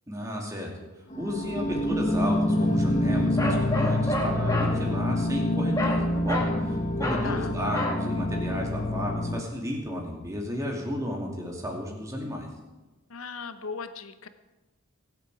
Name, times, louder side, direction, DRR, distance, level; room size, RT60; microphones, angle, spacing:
voice 1, 0.1-0.7 1.2-12.5, equal, 15° right, -1 dB, 2.6 m, -33 dB
sound 1, 1.1-9.4, left 1 dB, 35° left, 0.9 m, -26 dB
Bark, 3.4-4.7 5.8-6.0 6.3-6.6 7.0-7.3 7.7-8.0, left 1 dB, 15° left, 2.1 m, -29 dB
voice 2, 13.1-14.3, left 5 dB, 70° left, 10 dB, 0.9 m, -37 dB
23.5 x 8.0 x 4.9 m, 1.1 s
head